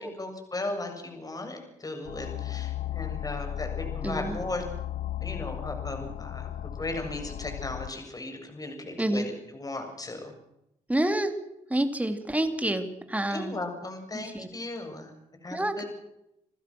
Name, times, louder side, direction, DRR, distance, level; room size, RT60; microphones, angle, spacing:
voice 1, 0.0-4.6 5.2-10.3 13.3-15.1 15.4-15.9, left 2 dB, 25° left, 4 dB, 7.4 m, -36 dB
sound 1, 2.1-7.9, left 11 dB, 80° left, 0.8 m, -35 dB
voice 2, 4.0-4.4 9.0-9.3 10.9-11.3 11.7-13.6 14.1-14.5 15.5-15.8, right 1 dB, 10° right, 8 dB, 3.6 m, -28 dB
29.0 x 15.0 x 6.5 m, 0.83 s
cardioid pair, 70°, 13 cm